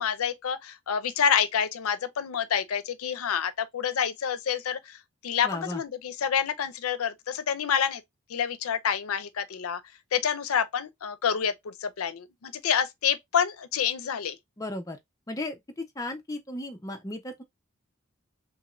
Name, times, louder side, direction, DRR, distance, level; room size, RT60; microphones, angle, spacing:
voice 1, 0.0-5.0 5.2-8.0 8.3-9.8 10.1-14.4, left 8 dB, 90° left, 0.5 m, -28 dB
voice 2, 5.4-5.8 14.6-15.0 15.3-17.4, left 1 dB, 15° left, 0.4 m, -35 dB
2.9 x 2.5 x 2.9 m
head